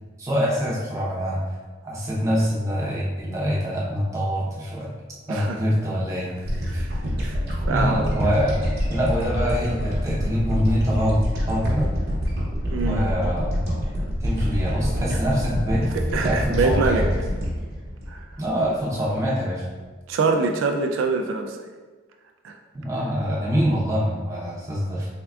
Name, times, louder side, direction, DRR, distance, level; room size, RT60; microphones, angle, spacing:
voice 1, 0.2-1.4 1.8-4.9 5.3-6.3 6.7-6.8 7.7-11.9 12.8-13.7 14.2-15.9 16.1-17.0 18.4-19.6 22.7-25.1, equal, 15° right, -5 dB, 0.7 m, -24 dB
voice 2, 5.3-5.6 6.7-6.8 7.2-7.4 7.7-8.3 12.7-13.1 15.9-17.1 18.1-18.2 20.1-21.6 22.4-22.6, right 4 dB, 75° right, 3 dB, 0.3 m, -24 dB
sound 1, 6.5-18.9, equal, 50° right, 0.9 m, -26 dB
3.5 x 3.4 x 2.3 m, 1.4 s
head